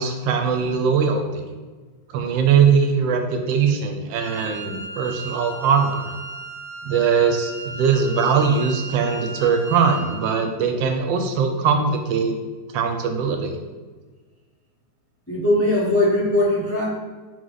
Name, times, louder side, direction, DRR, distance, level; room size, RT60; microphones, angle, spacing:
voice 1, 0.0-1.4 2.1-6.1 6.8-12.4 12.7-13.6, right 6 dB, 85° right, 5 dB, 1.3 m, -21 dB
Wind instrument woodwind instrument, 4.1-10.5, right 2 dB, 35° left, 0.8 m, -36 dB
voice 2, 15.3-16.8, left 1 dB, 20° left, -5 dB, 0.4 m, -20 dB
4.2 x 3.2 x 3.8 m, 1.4 s
omnidirectional pair, 2.0 m